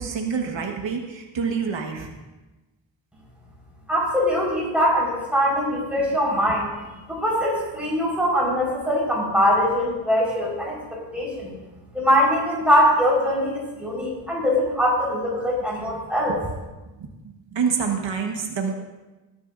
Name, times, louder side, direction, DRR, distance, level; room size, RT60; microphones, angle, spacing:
voice 1, 0.0-2.1 16.3-16.4 17.0-18.7, right 6 dB, 80° right, 2 dB, 1.3 m, -27 dB
voice 2, 3.9-6.7 7.1-11.5 11.9-16.3, equal, 5° right, -5 dB, 4.3 m, -22 dB
18.0 x 10.5 x 2.5 m, 1.1 s
wide cardioid pair, 125°, 44 cm